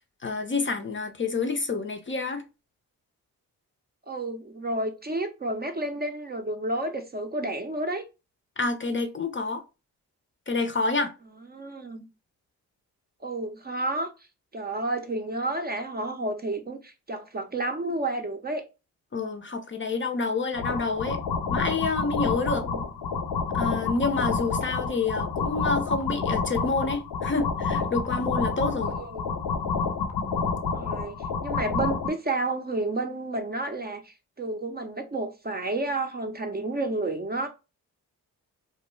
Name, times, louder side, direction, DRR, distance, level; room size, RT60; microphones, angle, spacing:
voice 1, 0.2-2.4 8.6-9.6 10.5-11.1 19.1-21.2 21.5-22.6 23.5-28.9, left 3 dB, 30° left, 0.5 m, -28 dB
voice 2, 4.1-8.0 11.5-12.1 13.2-14.1 14.5-18.6 22.5-22.9 28.9-29.3 30.7-37.5, right 2 dB, 25° right, 0.5 m, -31 dB
sound 1, 20.5-32.1, left 5 dB, 70° left, 0.7 m, -29 dB
2.2 x 2.1 x 3.0 m
supercardioid pair, 40°, 40 cm